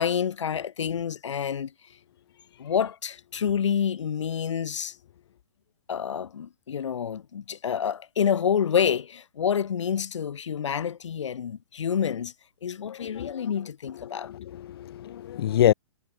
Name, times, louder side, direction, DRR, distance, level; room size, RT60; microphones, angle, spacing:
voice 1, 0.0-1.7 2.6-5.0 5.9-12.3 12.6-14.3, left 8 dB, 85° left, 1.2 m, -28 dB
voice 2, 12.9-13.5 14.0-15.7, left 11 dB, 55° left, 0.5 m, -27 dB
hypercardioid pair, 155°, 15 cm